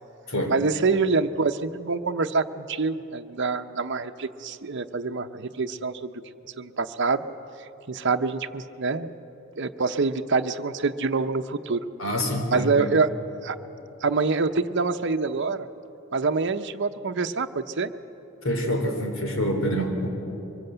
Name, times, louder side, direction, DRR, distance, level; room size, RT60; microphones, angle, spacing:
voice 1, 0.5-6.1 6.6-7.2 7.9-9.1 9.6-11.8 12.5-13.1 13.4-13.6 14.0-15.7 16.1-17.9, right 4 dB, 60° right, 7 dB, 0.8 m, -26 dB
voice 2, 12.0-12.9 18.4-20.1, equal, 90° left, 3 dB, 3.7 m, -26 dB
24.0 x 20.5 x 8.0 m, 3.0 s
head